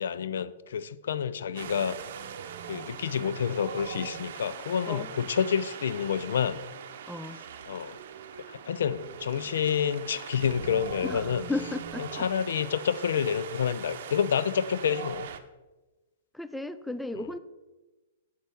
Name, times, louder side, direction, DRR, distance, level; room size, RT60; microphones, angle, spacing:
voice 1, 0.0-2.0 2.7-6.6 7.7-8.0 8.5-11.4 12.0-15.3 17.2-17.3, left 7 dB, 75° left, 16 dB, 0.4 m, -28 dB
Wind, 1.6-15.4, right 8 dB, 65° right, 0.7 m, -41 dB
voice 2, 7.1-7.4 11.0-12.3 16.3-17.4, left 2 dB, 5° left, 12 dB, 0.3 m, -34 dB
8.4 x 7.3 x 3.5 m, 1.1 s
hypercardioid pair, 125°, 0 cm